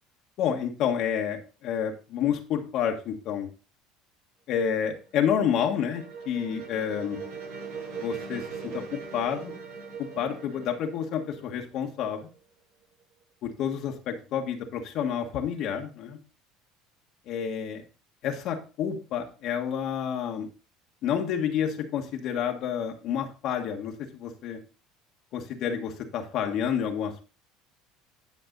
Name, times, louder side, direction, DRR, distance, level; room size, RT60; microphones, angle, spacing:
voice 1, 0.4-3.5 4.5-7.2 8.0-9.5 10.0-12.3 13.4-16.2 17.3-17.8 18.2-20.5 21.0-24.6 25.3-27.2, left 8 dB, 60° left, 2 dB, 1.6 m, -29 dB
sound 1, 5.0-12.4, right 5 dB, 80° right, 5.5 m, -41 dB
11.0 x 5.4 x 4.0 m, 0.34 s
supercardioid pair, 90°, 0 cm